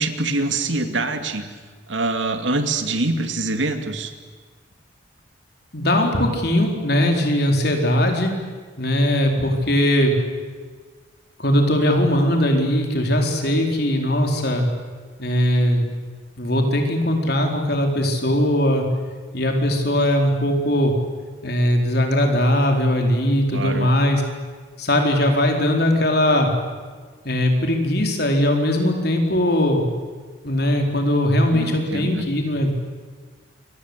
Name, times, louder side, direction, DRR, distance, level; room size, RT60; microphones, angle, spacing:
voice 1, 0.0-1.5 1.9-4.1 23.5-23.9 31.5-32.2, right 2 dB, 80° right, 7 dB, 2.6 m, -24 dB
voice 2, 5.7-8.3 8.8-10.2 11.4-14.7 15.2-15.8 16.4-18.8 19.3-20.9 21.4-24.2 24.8-26.5 27.2-29.9 30.4-32.7, left 1 dB, 55° left, 3 dB, 4.5 m, -20 dB
28.5 x 23.5 x 8.3 m, 1.5 s
head